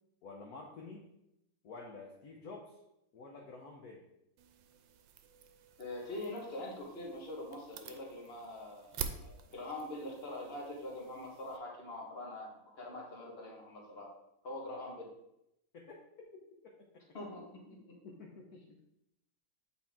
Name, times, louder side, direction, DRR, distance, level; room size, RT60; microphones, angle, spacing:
voice 1, 0.2-1.1 1.6-2.8 3.1-4.0 15.7-16.0 16.6-17.0 17.8-18.8, left 3 dB, 60° left, -1 dB, 1.2 m, -50 dB
sound 1, 4.4-11.6, right 7 dB, 80° right, 1.3 m, -48 dB
voice 2, 5.8-14.1 14.4-15.1 17.1-18.0, left 1 dB, 35° left, -1 dB, 1.4 m, -44 dB
7.9 x 4.3 x 3.6 m, 0.83 s
omnidirectional pair, 2.1 m